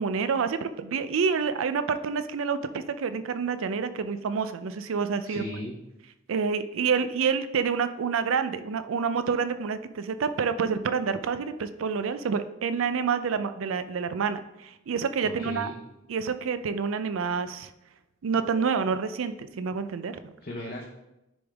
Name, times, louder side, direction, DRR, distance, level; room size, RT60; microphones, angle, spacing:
voice 1, 0.0-5.4 6.3-15.7 16.1-17.7 18.2-20.3, right 6 dB, 85° right, 11 dB, 0.4 m, -28 dB
voice 2, 5.2-5.8 15.2-15.7 20.4-20.9, left 1 dB, 45° left, -2 dB, 0.7 m, -36 dB
10.0 x 3.5 x 3.4 m, 0.92 s
head